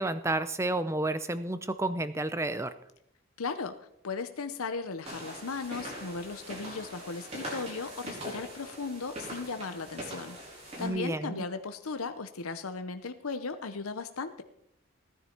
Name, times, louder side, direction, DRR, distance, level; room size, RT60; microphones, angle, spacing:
voice 1, 0.0-2.7 10.8-11.4, right 2 dB, 15° right, 12 dB, 0.6 m, -31 dB
voice 2, 3.4-3.8 4.0-14.4, left 4 dB, 85° left, 9 dB, 0.8 m, -37 dB
sound 1, 5.0-10.9, equal, 30° right, 5.0 m, -42 dB
17.5 x 10.0 x 4.5 m, 0.78 s
head